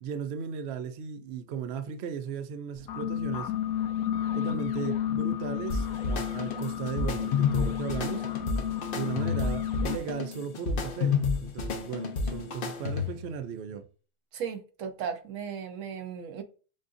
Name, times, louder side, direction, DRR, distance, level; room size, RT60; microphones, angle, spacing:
voice 1, 0.0-3.5 4.3-8.3 8.9-13.9, right 7 dB, 85° right, 0.5 m, -36 dB
sound 1, 2.8-10.0, left 10 dB, 70° left, 1.1 m, -32 dB
sound 2, 5.7-13.3, left 5 dB, 50° left, 0.6 m, -30 dB
voice 2, 14.3-16.4, right 7 dB, 60° right, 1.0 m, -36 dB
7.5 x 2.5 x 2.5 m
omnidirectional pair, 1.7 m